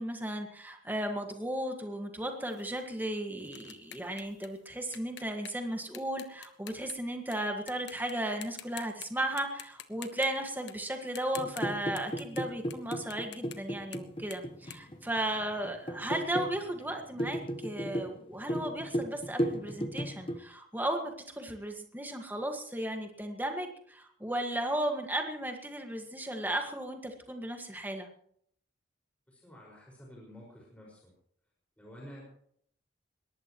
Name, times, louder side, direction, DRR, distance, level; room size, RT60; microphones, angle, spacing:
voice 1, 0.0-28.1, right 1 dB, 10° right, 4 dB, 1.8 m, -35 dB
sound 1, 2.5-7.4 7.7-8.1 8.4-9.1 9.4-15.7, left 10 dB, 65° left, 1.2 m, -49 dB
sound 2, 11.4-20.4, equal, 30° left, 1.1 m, -36 dB
voice 2, 29.3-31.1 31.8-32.3, equal, 5° left, -4 dB, 5.5 m, -50 dB
22.0 x 19.0 x 3.1 m, 0.65 s
head